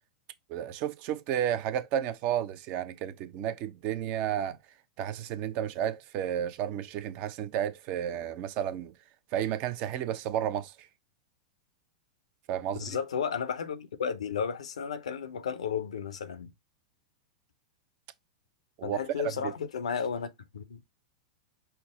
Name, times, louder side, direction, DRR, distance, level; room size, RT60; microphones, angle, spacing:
voice 1, 0.5-4.6 5.0-8.9 9.3-10.9 12.5-12.9 18.8-19.5, right 10 dB, 45° right, 0.5 m, -32 dB
voice 2, 12.8-16.5 18.8-20.8, left 7 dB, 70° left, 0.6 m, -33 dB
5.7 x 2.0 x 3.7 m
figure-of-eight pair, 95°, 3 cm